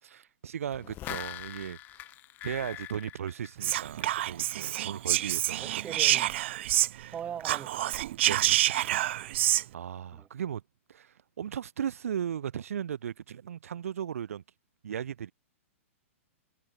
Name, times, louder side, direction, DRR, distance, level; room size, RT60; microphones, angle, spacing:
voice 1, 0.0-2.1 2.4-5.7 8.2-9.0 9.2-10.6 10.9-14.4 14.8-15.3, right 9 dB, 80° right, 3.9 m, -37 dB
sound 1, 0.7-4.2 4.6-4.7, left 15 dB, 25° left, 1.0 m, -42 dB
Whispering, 3.6-7.1 7.4-9.6, right 14 dB, 55° right, 1.2 m, -27 dB
voice 2, 5.6-6.4 7.1-8.0 9.2-9.4 10.1-10.3, right 8 dB, 15° right, 1.8 m, -41 dB
hypercardioid pair, 155°, 8 cm